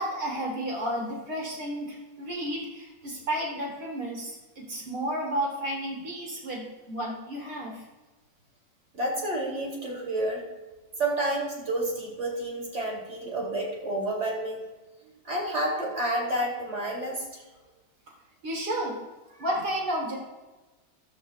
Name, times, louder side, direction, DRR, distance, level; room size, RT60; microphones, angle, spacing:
voice 1, 0.0-7.8 18.4-19.0 19.4-20.2, right 1 dB, 60° right, -2 dB, 3.7 m, -32 dB
voice 2, 8.9-10.4 11.0-14.7 15.2-17.4, right 1 dB, 40° right, -2 dB, 3.1 m, -30 dB
13.5 x 13.0 x 2.3 m, 1.2 s
omnidirectional pair, 2.0 m